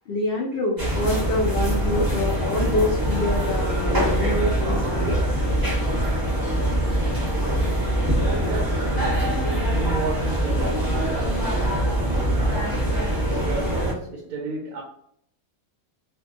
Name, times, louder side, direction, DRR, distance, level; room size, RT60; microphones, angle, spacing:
voice 1, 0.1-5.2, left 1 dB, 70° left, 0.5 m, -26 dB
sound 1, 0.8-13.9, right 1 dB, 20° right, 0.6 m, -23 dB
voice 2, 8.4-9.1 9.7-14.8, right 3 dB, 75° right, 1.0 m, -34 dB
2.5 x 2.1 x 2.4 m
omnidirectional pair, 1.6 m